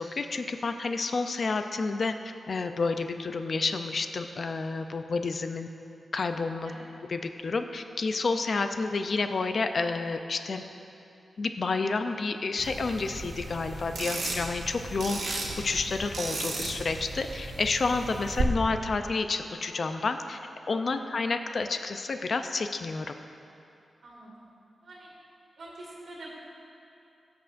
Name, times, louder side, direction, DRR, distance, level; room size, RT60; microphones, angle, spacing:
voice 1, 0.0-2.1 2.5-5.7 6.1-6.7 7.1-10.6 11.4-20.4 20.7-23.1, left 3 dB, 60° left, 7 dB, 0.5 m, -30 dB
sound 1, 12.6-18.4, right 3 dB, 90° right, 1.7 m, -35 dB
voice 2, 24.0-24.5 24.8-25.1 25.6-26.3, right 2 dB, 70° right, -5 dB, 2.0 m, -46 dB
18.5 x 8.0 x 2.6 m, 2.7 s
cardioid pair, 75°, 0 cm